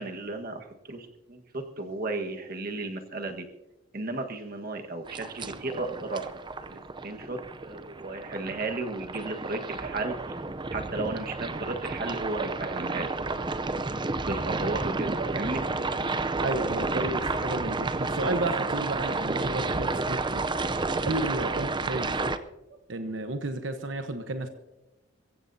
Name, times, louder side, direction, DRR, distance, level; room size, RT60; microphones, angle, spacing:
voice 1, 0.0-3.4 3.9-6.3 6.6-6.8 7.0-13.5 14.2-15.6 21.6-21.7 22.7-22.8, right 2 dB, 50° right, 4 dB, 1.6 m, -34 dB
sound 1, 5.1-22.4, right 3 dB, 25° right, 0.6 m, -31 dB
voice 2, 16.4-20.4 21.0-22.2 22.9-24.5, right 2 dB, 80° right, 7 dB, 1.1 m, -32 dB
23.0 x 15.5 x 2.8 m, 1.0 s
head